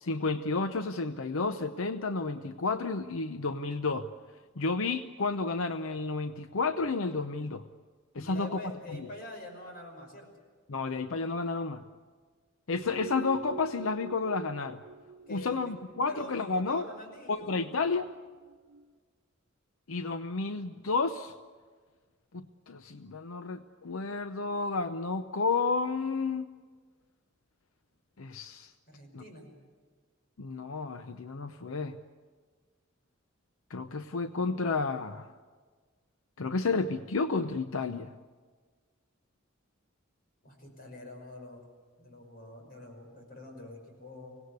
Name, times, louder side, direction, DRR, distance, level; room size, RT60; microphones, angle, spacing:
voice 1, 0.0-4.1 4.6-7.6 8.1-8.5 8.9-9.1 10.7-11.8 12.7-14.8 15.3-16.8 17.3-18.1 19.9-21.3 22.3-26.5 28.2-28.7 29.1-29.2 30.4-32.0 33.7-35.3 36.4-38.1, left 4 dB, 90° left, 10 dB, 0.7 m, -31 dB
voice 2, 8.2-10.3 15.3-15.7 16.0-17.8 28.9-29.5 40.4-41.7 42.0-44.4, left 1 dB, 50° left, 3 dB, 5.8 m, -46 dB
sound 1, 12.7-18.9, right 3 dB, 75° right, 0.9 m, -46 dB
25.0 x 18.0 x 8.2 m, 1.5 s
head